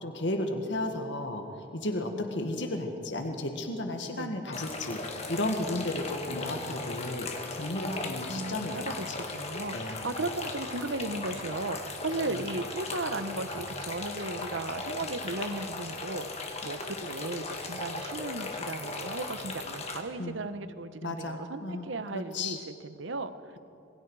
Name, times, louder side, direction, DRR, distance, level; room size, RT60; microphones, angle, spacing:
voice 1, 0.0-1.4 1.7-7.3 7.6-8.9 9.7-10.1 12.3-12.4 20.2-20.3 21.0-22.6, left 1 dB, 60° left, 4 dB, 1.7 m, -33 dB
voice 2, 2.0-2.6 4.1-4.3 8.3-23.6, right 2 dB, 70° right, 11 dB, 1.0 m, -36 dB
sound 1, 4.5-20.0, left 3 dB, 30° left, 2.0 m, -37 dB
27.0 x 22.0 x 4.9 m, 2.7 s
head